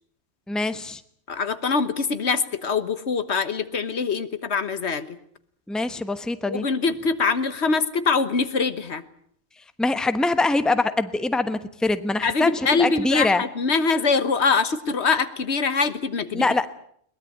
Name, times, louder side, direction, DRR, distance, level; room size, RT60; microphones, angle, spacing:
voice 1, 0.5-1.0 5.7-6.6 9.8-13.4 16.3-16.7, left 2 dB, ahead, 11 dB, 1.0 m, -23 dB
voice 2, 1.3-5.2 6.5-9.0 12.2-16.5, left 4 dB, 75° left, 12 dB, 1.5 m, -23 dB
22.0 x 20.0 x 8.6 m, 0.65 s
omnidirectional pair, 1.1 m